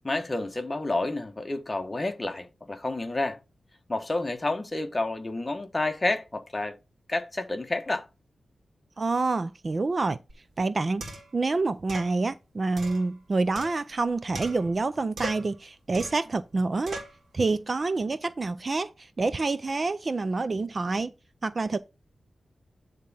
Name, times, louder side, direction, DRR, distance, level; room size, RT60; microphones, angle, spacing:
voice 1, 0.0-3.4 3.9-6.8 7.1-8.1, left 2 dB, 20° left, 1.2 m, -29 dB
voice 2, 9.0-10.2 10.6-17.0 17.3-21.1 21.4-21.8, right 3 dB, 35° right, 0.4 m, -27 dB
sound 1, 10.3-10.4 11.0-11.4 11.9-12.1 12.8-14.0 14.3-14.9 15.2-15.6 15.9-16.3 16.9-17.2, right 2 dB, 70° right, 2.1 m, -39 dB
9.4 x 3.6 x 5.5 m
wide cardioid pair, 135°, 0 cm